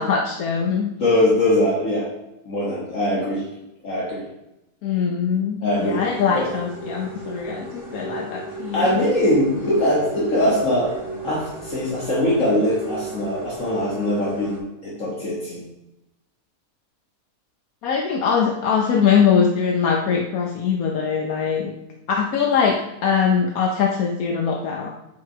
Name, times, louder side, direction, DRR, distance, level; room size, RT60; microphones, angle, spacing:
voice 1, 0.0-0.9 4.8-8.9 17.8-21.7 22.1-22.7 23.0-24.9, left 6 dB, 75° left, 2 dB, 1.2 m, -22 dB
voice 2, 1.0-2.1 2.5-3.4 3.8-4.2 5.6-6.0 6.3-6.5 8.7-11.0 11.2-15.6, left 1 dB, 60° left, -6 dB, 1.9 m, -21 dB
sound 1, 5.8-14.6, right 2 dB, 25° right, 3.1 m, -35 dB
7.4 x 4.8 x 4.6 m, 0.91 s
omnidirectional pair, 1.6 m